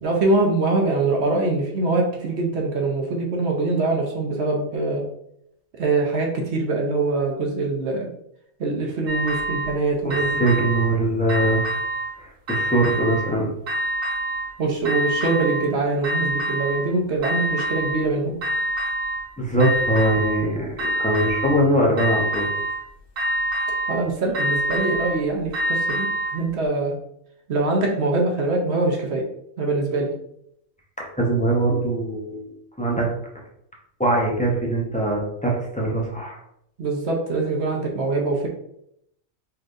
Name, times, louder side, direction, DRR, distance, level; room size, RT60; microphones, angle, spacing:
voice 1, 0.0-5.1 5.8-8.1 8.6-10.4 14.6-18.4 23.9-26.1 26.3-26.9 27.5-29.2 29.6-30.1 36.8-38.5, right 3 dB, 60° right, 0 dB, 0.9 m, -23 dB
sound 1, 9.1-9.8 10.1-11.0 11.3-12.1 12.5-13.3 13.7-14.5 14.8-15.7 16.0-16.9 17.2-18.1 18.4-19.3 19.6-20.5 20.8-21.6 22.0-22.8 23.2-24.0 24.3-26.4, right 1 dB, 75° right, 1.2 m, -26 dB
voice 2, 10.0-11.6 12.2-13.5 19.4-22.5 31.0-33.1 34.0-36.4, right 1 dB, 10° left, -3 dB, 0.5 m, -22 dB
4.1 x 3.3 x 2.5 m, 0.75 s
omnidirectional pair, 1.4 m